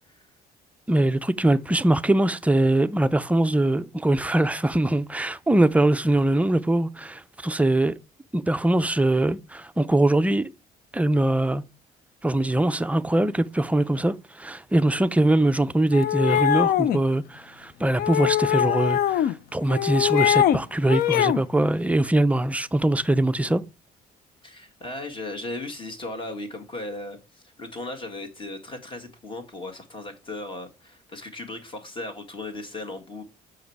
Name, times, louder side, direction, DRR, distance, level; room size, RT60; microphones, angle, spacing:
voice 1, 0.9-7.9 8.3-10.5 10.9-11.6 12.2-23.6, right 1 dB, 10° right, 0.4 m, -22 dB
sound 1, 15.9-17.0 18.0-19.3 19.7-20.6 20.9-21.4, left 11 dB, 60° left, 0.5 m, -22 dB
voice 2, 24.4-33.2, left 2 dB, 30° left, 1.9 m, -36 dB
6.7 x 5.0 x 4.6 m
cardioid pair, 110°, 17 cm